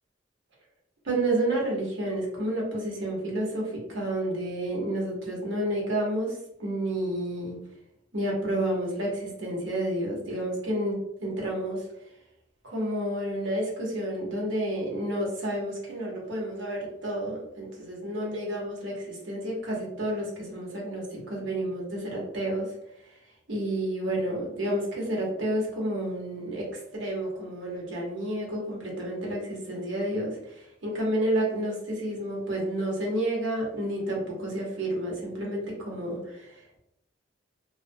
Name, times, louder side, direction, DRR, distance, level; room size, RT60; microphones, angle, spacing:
voice 1, 1.0-7.6 8.1-12.1 12.6-23.2 23.5-36.8, right 1 dB, 80° right, -3 dB, 0.8 m, -30 dB
2.4 x 2.0 x 2.5 m, 0.81 s
head